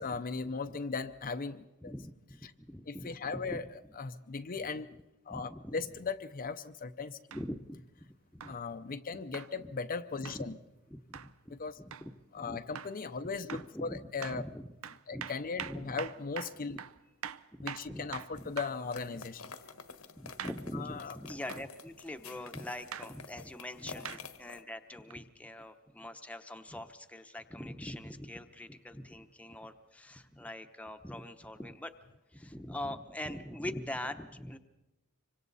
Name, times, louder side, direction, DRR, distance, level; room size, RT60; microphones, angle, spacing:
voice 1, 0.0-1.9 2.9-3.6 4.0-4.9 5.3-7.2 8.5-10.5 11.6-11.7 12.3-14.4 15.1-16.8 17.6-19.5 20.7-21.1, left 4 dB, 40° left, 8 dB, 0.6 m, -38 dB
voice 2, 1.8-3.6 4.5-4.7 5.3-6.0 7.3-8.0 8.3-8.6 8.9-9.2 10.2-10.6 10.9-11.5 11.8-12.6 13.2-14.7 15.1-15.3 15.6-16.0 16.6-16.8 17.6-18.5 20.1-31.9 32.3-34.6, left 1 dB, 5° left, 7 dB, 0.9 m, -43 dB
sound 1, 7.3-7.5 8.4-8.6 9.3-9.5 10.3-10.4 11.1-11.3 11.9-12.1 12.8-13.0 13.5-13.7 14.2-14.4 14.8-18.8 20.4-20.6 21.5-21.7 22.9-23.1 24.1-24.2 25.1-25.2, right 8 dB, 75° right, 0.6 m, -43 dB
sound 2, 18.4-24.6, left 5 dB, 85° left, 1.4 m, -49 dB
26.0 x 24.5 x 4.1 m, 1.0 s
head